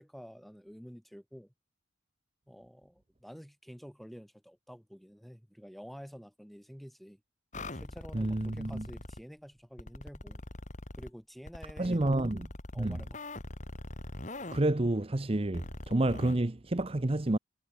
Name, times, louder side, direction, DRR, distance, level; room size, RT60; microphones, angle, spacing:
voice 1, 0.0-1.5 2.5-7.2 7.7-10.4 11.0-12.4 12.7-13.2, equal, ahead, 3.2 m, -49 dB
sound 1, 7.5-9.2 9.8-11.1 11.5-14.6 15.5-16.4, left 1 dB, 40° left, 2.3 m, -42 dB
voice 2, 8.1-8.9 11.8-12.5 12.8-13.0 14.5-17.4, right 1 dB, 30° right, 0.8 m, -29 dB
head